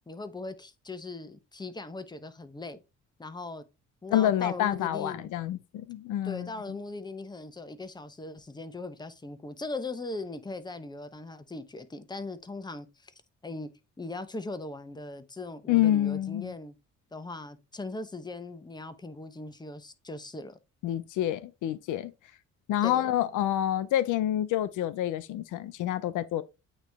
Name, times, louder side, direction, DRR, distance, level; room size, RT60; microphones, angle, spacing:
voice 1, 0.1-2.8 3.2-3.6 4.0-5.3 6.2-13.1 13.4-13.7 14.0-16.7 17.1-20.6 22.8-23.1, left 2 dB, 15° left, 0.9 m, -39 dB
voice 2, 4.1-6.5 15.7-16.5 20.8-22.1 22.7-26.4, left 12 dB, 80° left, 0.6 m, -27 dB
8.8 x 3.1 x 3.4 m
cardioid pair, 90°, 30 cm